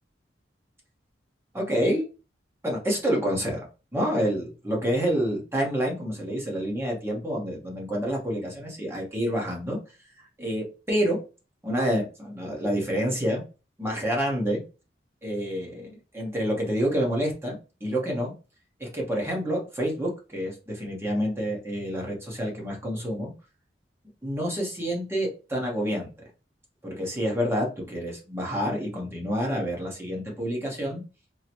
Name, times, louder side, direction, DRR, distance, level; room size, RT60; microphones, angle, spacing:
voice 1, 1.5-2.1 2.6-3.6 3.9-9.8 10.2-11.2 11.6-13.4 13.8-14.6 15.2-17.6 17.8-18.3 18.8-23.3 24.2-26.1 26.8-31.0, equal, 15° right, -1 dB, 0.9 m, -28 dB
3.7 x 2.1 x 2.9 m, 0.33 s
head